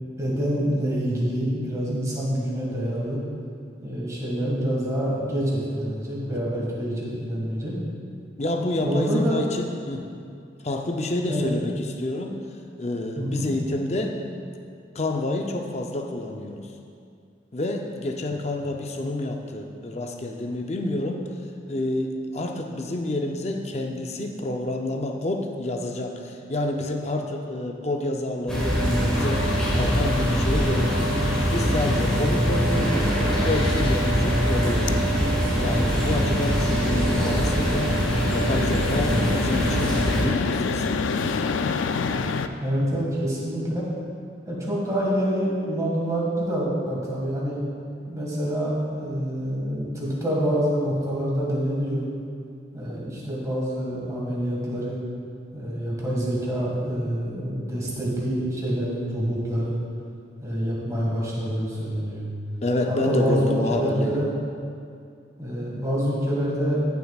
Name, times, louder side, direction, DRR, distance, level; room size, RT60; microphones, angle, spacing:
voice 1, 0.2-3.2 3.8-7.8 8.8-9.4 11.3-11.4 13.2-13.5 42.6-43.9 44.5-47.6 48.1-52.0 52.7-55.0 55.5-59.8 60.4-62.3 62.9-64.3 65.4-66.8, equal, 15° right, -5 dB, 1.8 m, -26 dB
voice 2, 8.4-10.1 10.6-12.3 12.8-14.1 14.9-16.7 17.5-21.2 21.7-31.1 31.5-33.1 33.4-35.1 35.6-41.0 62.6-64.3, left 2 dB, 35° left, 2 dB, 0.5 m, -28 dB
sound 1, 28.5-40.2, equal, 5° left, 1.7 m, -23 dB
street distant tram noise, 29.1-42.5, left 5 dB, 90° left, 0.4 m, -30 dB
14.5 x 6.9 x 2.4 m, 2.4 s
head